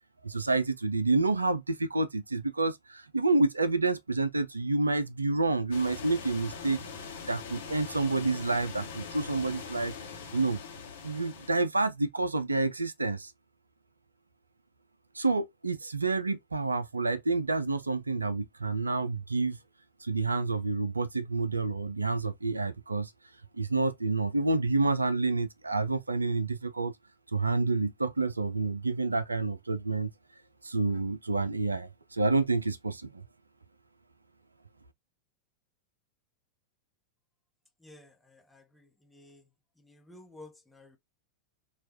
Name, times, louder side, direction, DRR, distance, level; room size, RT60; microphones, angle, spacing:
voice 1, 0.2-6.8 7.3-9.9 10.3-10.6 11.0-13.3 15.2-19.6 20.0-23.1 23.6-26.9 27.3-30.1 30.6-33.1, right 3 dB, 80° right, 0.4 m, -28 dB
sound 1, 5.7-11.5, left 5 dB, 65° left, 1.0 m, -42 dB
voice 2, 37.8-39.4 39.8-41.0, left 2 dB, 5° left, 0.9 m, -53 dB
4.5 x 2.3 x 2.7 m
figure-of-eight pair, 90°, 0 cm